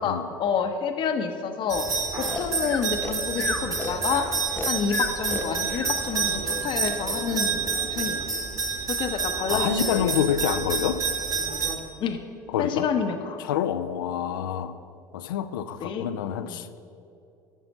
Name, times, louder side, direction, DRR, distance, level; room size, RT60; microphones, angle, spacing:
voice 1, 0.0-1.9 2.2-4.2 4.7-8.3 8.9-10.2 12.0-12.2 12.6-13.4 15.8-16.1 16.4-16.7, left 6 dB, 50° left, 6 dB, 0.8 m, -29 dB
sound 1, 1.7-11.8, right 4 dB, 30° right, 1.4 m, -28 dB
Breathing, 2.2-5.9, left 3 dB, 15° left, 1.0 m, -32 dB
voice 2, 9.5-11.0 12.5-12.9 13.4-14.7 15.1-16.8, left 9 dB, 80° left, 12 dB, 0.5 m, -27 dB
11.0 x 4.3 x 7.2 m, 2.6 s
hypercardioid pair, 70°, 11 cm